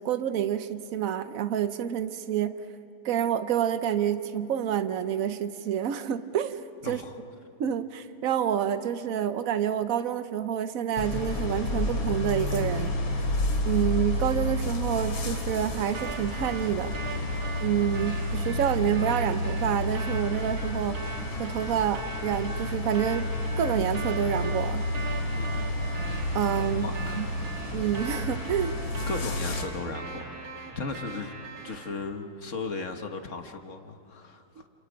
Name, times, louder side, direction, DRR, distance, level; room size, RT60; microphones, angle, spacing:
voice 1, 0.0-2.5 3.0-7.0 7.6-13.2 13.6-17.0 17.6-21.0 21.4-23.3 23.6-24.8 26.3-26.9 27.2-27.3 27.7-28.7, right 9 dB, 85° right, 11 dB, 0.7 m, -28 dB
voice 2, 6.8-7.2 25.3-25.7 26.8-27.3 29.1-30.4 30.7-31.3 31.6-34.7, left 4 dB, 40° left, 5 dB, 1.4 m, -36 dB
sound 1, 11.0-29.6, left 1 dB, 65° left, 3.2 m, -30 dB
sound 2, 15.9-31.9, right 3 dB, 65° right, 2.7 m, -40 dB
29.5 x 29.0 x 5.1 m, 2.9 s
omnidirectional pair, 2.4 m